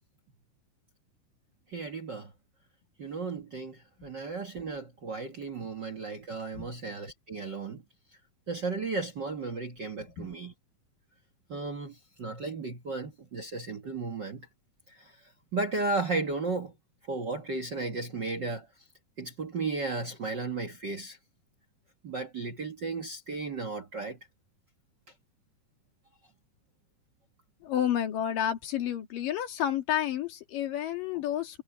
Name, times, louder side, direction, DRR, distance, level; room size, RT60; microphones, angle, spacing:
voice 1, 1.7-2.3 3.0-7.8 8.5-10.5 11.5-14.5 14.9-15.1 15.5-16.7 17.1-18.7 19.2-21.2 22.0-24.2, right 3 dB, 45° right, 1.5 m, -34 dB
voice 2, 10.0-10.4 27.6-31.6, left 10 dB, 75° left, 3.6 m, -30 dB
omnidirectional pair, 4.0 m